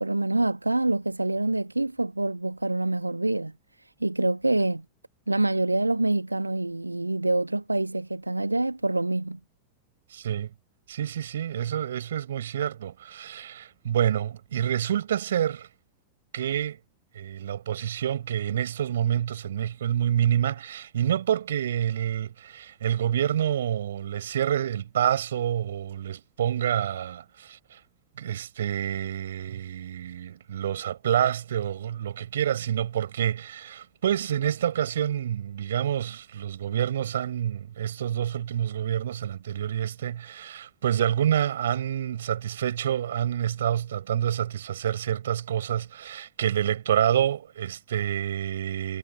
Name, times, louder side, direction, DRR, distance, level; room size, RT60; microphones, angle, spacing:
voice 1, 0.0-4.8 5.3-9.4, right 2 dB, 85° right, 1.4 m, -26 dB
voice 2, 10.1-10.5 10.9-15.7 16.3-16.8 17.1-27.8 28.2-49.0, right 10 dB, 65° right, 5.1 m, -28 dB
figure-of-eight pair, 90°, 0 cm